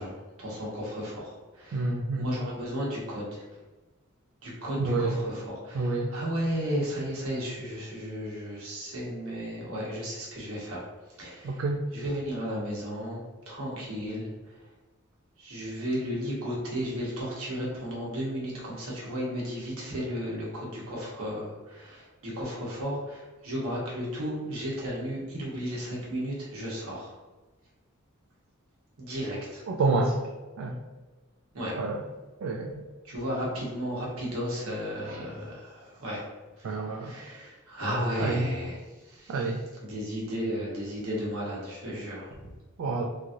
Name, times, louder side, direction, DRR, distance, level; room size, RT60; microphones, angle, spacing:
voice 1, 0.0-1.9 2.2-3.4 4.4-10.8 11.2-11.6 11.9-14.6 15.4-27.1 29.0-29.6 31.5-31.8 33.0-36.2 36.6-38.8 39.0-39.4 39.8-42.5, equal, 80° right, -4 dB, 1.0 m, -34 dB
voice 2, 1.7-2.3 4.8-5.2 5.7-6.1 11.4-11.8 29.7-30.2 30.6-30.8 31.8-32.0 32.4-32.9 35.1-35.2 36.6-37.1 38.2-38.5 39.3-39.6 42.8-43.1, right 3 dB, 65° right, 0 dB, 0.3 m, -28 dB
3.0 x 2.6 x 2.5 m, 1.2 s
head